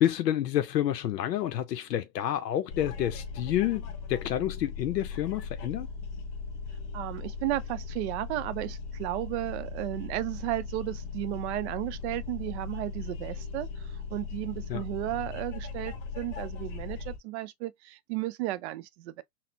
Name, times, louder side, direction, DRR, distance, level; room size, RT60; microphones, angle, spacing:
voice 1, 0.0-5.9 14.7-14.8, left 12 dB, 85° left, 0.6 m, -29 dB
sound 1, 2.7-17.2, left 4 dB, 45° left, 0.9 m, -38 dB
voice 2, 6.9-19.2, right 16 dB, 45° right, 0.5 m, -34 dB
4.0 x 2.0 x 2.6 m
hypercardioid pair, 110°, 48 cm